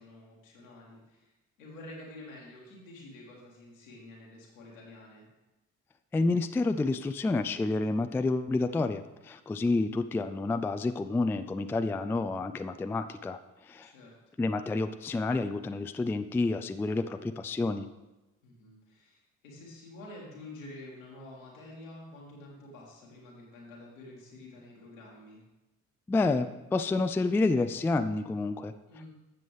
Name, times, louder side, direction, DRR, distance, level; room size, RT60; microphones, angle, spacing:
voice 1, 0.0-1.3 1.6-5.3 13.8-14.1 18.4-25.4 28.9-29.1, left 1 dB, 80° left, -3 dB, 2.0 m, -49 dB
voice 2, 6.1-13.4 13.7-13.9 14.4-17.9 26.1-28.7, left 3 dB, 5° left, 10 dB, 0.3 m, -29 dB
12.5 x 7.5 x 3.3 m, 1.0 s
figure-of-eight pair, 40°, 40 cm